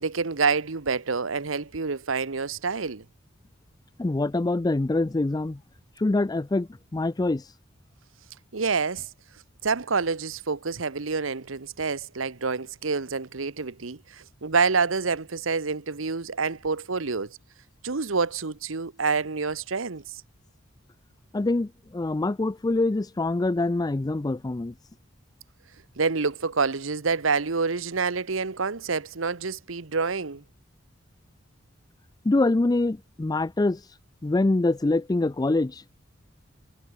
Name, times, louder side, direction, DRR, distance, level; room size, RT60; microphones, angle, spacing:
voice 1, 0.0-3.0 8.5-9.1 9.6-17.4 17.8-20.2 26.0-30.4, right 4 dB, 80° right, 1.1 m, -27 dB
voice 2, 4.0-5.6 6.0-7.4 21.3-24.7 32.2-33.8 34.2-35.8, left 2 dB, 20° left, 0.4 m, -25 dB
head